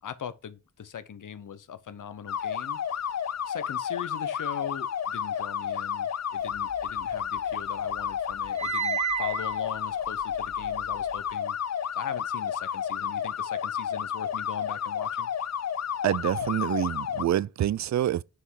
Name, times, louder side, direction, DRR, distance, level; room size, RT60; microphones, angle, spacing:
voice 1, 0.0-3.1 3.5-11.6 11.9-15.3, left 8 dB, 80° left, 0.8 m, -40 dB
sound 1, 2.3-17.2, left 8 dB, 60° left, 0.6 m, -31 dB
sound 2, 6.5-7.6 7.9-11.3, right 10 dB, 20° right, 0.6 m, -34 dB
voice 2, 16.0-18.2, right 11 dB, 65° right, 0.4 m, -26 dB
6.5 x 5.6 x 4.7 m
cardioid pair, 45°, 31 cm